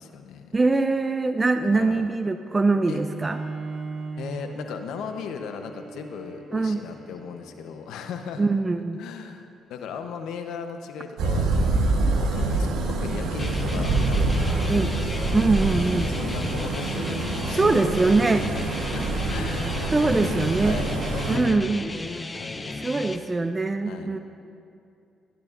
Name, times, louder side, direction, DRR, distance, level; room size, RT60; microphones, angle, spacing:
voice 1, 0.0-0.6 1.7-2.0 2.9-3.0 4.2-8.5 9.0-11.5 11.9-14.6 15.5-17.9 18.5-19.0 19.3-19.8 20.0-23.1 23.8-24.2, left 6 dB, 80° left, 7 dB, 0.8 m, -37 dB
voice 2, 0.5-3.4 6.5-6.8 8.4-9.0 14.7-14.9 15.3-16.1 17.5-18.5 19.9-20.8 21.3-21.8 22.8-24.2, right 3 dB, 25° right, 8 dB, 0.4 m, -22 dB
Bowed string instrument, 2.9-8.5, right 4 dB, 55° right, 1.0 m, -39 dB
sound 1, 11.2-21.4, right 2 dB, 80° right, 1.2 m, -26 dB
sound 2, 13.4-23.2, left 2 dB, 25° left, 0.7 m, -34 dB
17.5 x 10.5 x 2.5 m, 2.6 s
supercardioid pair, 65°, 0 cm